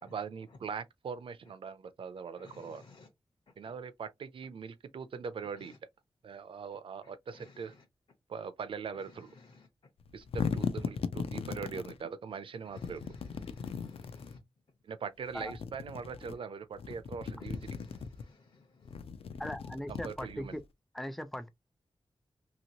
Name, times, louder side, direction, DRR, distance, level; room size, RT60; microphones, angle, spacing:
voice 1, 0.0-2.8 3.6-5.7 6.2-7.7 8.3-9.3 10.1-13.1 14.9-17.6 19.9-20.6, right 6 dB, 65° right, 0.4 m, -41 dB
voice 2, 2.4-3.1 3.6-3.7 5.5-5.8 7.0-7.8 8.9-9.7 12.6-14.4 17.4-19.1 20.4-20.6, left 3 dB, 55° left, 0.8 m, -55 dB
sound 1, 10.0-12.0 12.8-14.4 15.3-16.3 16.7-18.2 18.8-20.6, left 6 dB, 80° left, 0.4 m, -38 dB
voice 3, 19.4-20.6 20.9-21.5, left 1 dB, ahead, 0.3 m, -39 dB
2.9 x 2.7 x 2.8 m
wide cardioid pair, 165°, 10 cm